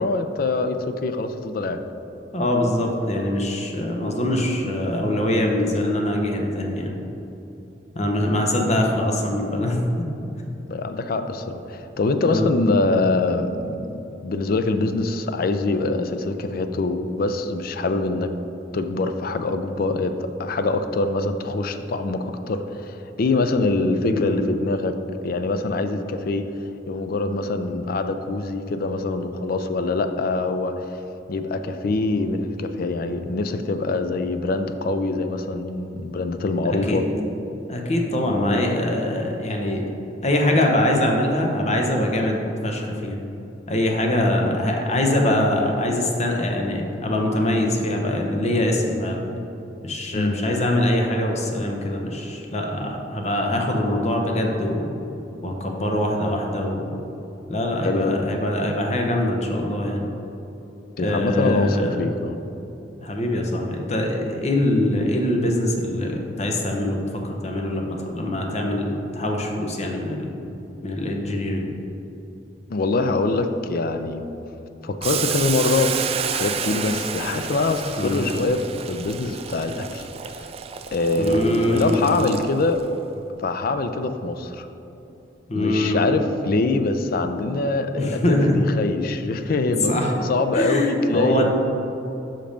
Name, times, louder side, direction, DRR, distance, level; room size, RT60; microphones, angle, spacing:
voice 1, 0.0-1.8 8.6-8.7 10.7-18.3 18.7-25.0 25.2-26.5 26.9-31.0 31.3-37.0 44.4-44.5 50.2-50.4 57.8-58.2 61.0-62.4 72.7-74.3 74.8-80.1 80.9-82.8 83.4-84.7 85.5-89.9 90.2-91.4, left 3 dB, 55° left, 8 dB, 0.4 m, -24 dB
voice 2, 2.3-6.9 7.9-10.1 12.2-12.6 24.1-24.5 36.9-37.1 37.7-39.8 40.2-43.2 43.7-49.2 49.8-54.9 55.4-56.9 57.5-60.0 61.0-62.0 63.0-67.0 67.2-70.4 70.8-71.7 78.0-78.2 81.2-82.2 85.5-86.0 88.0-88.7 89.9-90.1 90.5-91.4, left 1 dB, 40° left, 1 dB, 0.8 m, -23 dB
Boiling, 75.0-82.8, right 7 dB, 35° right, 0.3 m, -30 dB
5.7 x 5.2 x 5.1 m, 2.9 s
head